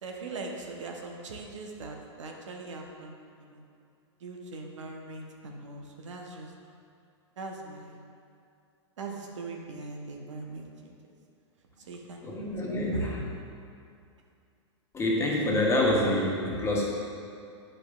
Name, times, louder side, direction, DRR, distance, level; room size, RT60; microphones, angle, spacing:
voice 1, 0.0-3.6 4.2-6.5 7.4-8.0 9.0-10.9 11.8-12.2, right 3 dB, 80° right, 1 dB, 0.8 m, -41 dB
voice 2, 12.2-13.2 14.9-16.9, left 1 dB, 15° left, -3 dB, 1.2 m, -26 dB
8.3 x 5.1 x 2.4 m, 2.4 s
hypercardioid pair, 115°, 15 cm